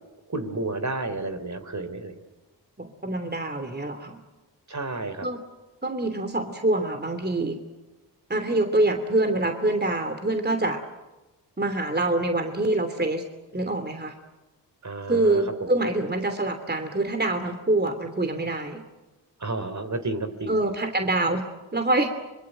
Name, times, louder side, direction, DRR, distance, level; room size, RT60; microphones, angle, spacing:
voice 1, 0.3-2.2 4.7-5.3 14.8-15.4 19.4-20.5, right 2 dB, 40° right, 8 dB, 3.7 m, -31 dB
voice 2, 2.8-4.2 5.2-5.4 5.8-7.6 8.3-10.8 11.6-13.2 13.5-14.1 15.1-18.8 20.5-21.4 21.7-22.1, right 2 dB, 25° right, 7 dB, 2.9 m, -25 dB
25.5 x 22.5 x 9.0 m, 1.1 s
supercardioid pair, 50°, 43 cm